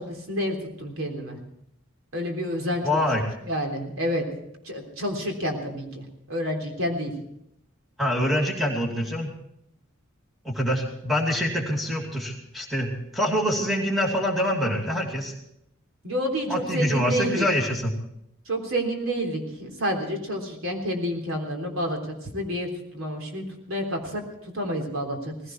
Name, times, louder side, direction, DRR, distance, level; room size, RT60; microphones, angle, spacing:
voice 1, 0.0-1.4 2.1-3.1 3.5-4.2 4.6-7.1 16.0-17.5 18.5-25.3, equal, 75° right, 2 dB, 3.5 m, -29 dB
voice 2, 2.8-3.2 8.0-9.3 10.4-15.3 16.5-17.9, equal, ahead, 0 dB, 2.6 m, -25 dB
19.0 x 16.0 x 4.7 m, 0.76 s
head